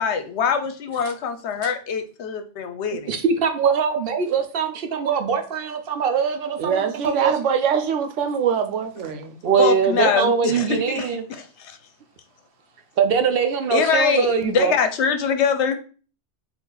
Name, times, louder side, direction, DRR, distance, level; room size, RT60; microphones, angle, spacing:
voice 1, 0.0-3.2 9.6-11.8 13.7-15.7, left 6 dB, 75° left, 0.9 m, -23 dB
voice 2, 3.1-7.3 9.4-11.2 13.0-14.7, right 6 dB, 60° right, 0.7 m, -22 dB
voice 3, 6.6-9.4, right 7 dB, 85° right, 1.0 m, -23 dB
4.0 x 2.5 x 3.8 m
omnidirectional pair, 1.2 m